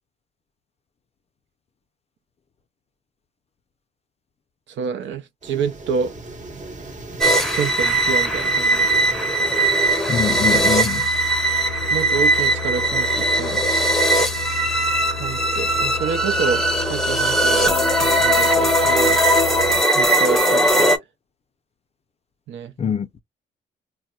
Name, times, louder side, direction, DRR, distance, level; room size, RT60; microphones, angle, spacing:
voice 1, 4.7-6.1 7.5-8.9 11.9-13.9 15.2-17.7 18.0-19.2 19.9-20.9 22.5-22.7, right 6 dB, 70° right, 0.7 m, -28 dB
sound 1, 5.4-10.6, right 2 dB, 35° right, 1.0 m, -35 dB
sound 2, 7.2-21.0, right 1 dB, ahead, 0.8 m, -19 dB
sound 3, 10.1-19.8, left 6 dB, 80° left, 0.6 m, -33 dB
voice 2, 10.1-11.1 22.8-23.2, left 7 dB, 30° left, 0.4 m, -24 dB
4.1 x 2.1 x 2.3 m
cardioid pair, 90°, 20 cm